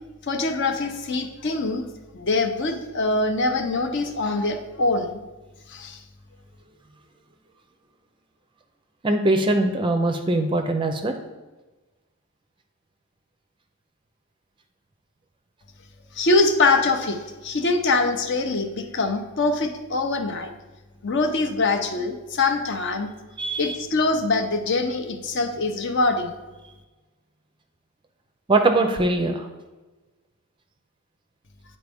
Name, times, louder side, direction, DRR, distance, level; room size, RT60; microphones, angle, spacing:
voice 1, 0.2-1.9 2.1-5.2 5.7-6.0 16.2-20.5 21.0-23.1 23.6-26.4, left 3 dB, 50° left, 6 dB, 0.6 m, -23 dB
voice 2, 9.0-11.1 23.4-23.8 28.5-29.5, right 2 dB, 20° right, 6 dB, 0.4 m, -22 dB
9.3 x 4.2 x 3.5 m, 1.2 s
head